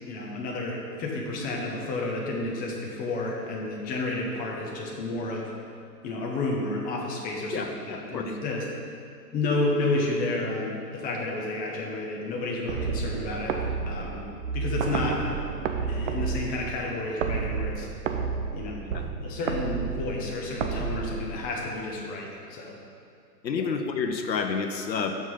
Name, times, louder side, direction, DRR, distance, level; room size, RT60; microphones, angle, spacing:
voice 1, 0.0-5.5 6.0-8.7 9.3-14.2 14.5-15.3 15.9-17.9 18.5-18.8 19.2-22.8, left 2 dB, 15° left, -2 dB, 1.1 m, -31 dB
voice 2, 7.5-8.3 14.0-14.1 23.4-25.2, left 5 dB, 85° left, 5 dB, 1.0 m, -29 dB
sound 1, 12.7-21.7, right 5 dB, 50° right, 0.7 m, -31 dB
13.5 x 5.4 x 3.9 m, 2.4 s
hypercardioid pair, 135°, 50 cm